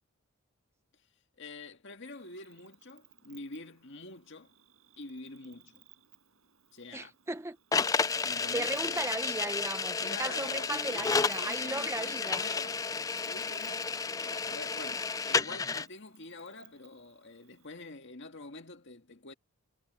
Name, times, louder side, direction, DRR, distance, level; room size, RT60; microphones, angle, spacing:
voice 1, 1.4-4.5 5.0-5.8 6.7-7.1 8.2-9.1 10.0-12.8 13.2-13.9 14.2-19.3, left 3 dB, 55° left, 1.9 m, -46 dB
Cricket, 2.1-17.7, right 11 dB, 70° right, 6.3 m, -63 dB
voice 2, 6.9-7.6 8.2-12.4, right 2 dB, 10° right, 0.7 m, -37 dB
sound 1, 7.7-15.9, left 4 dB, 15° left, 0.3 m, -32 dB
head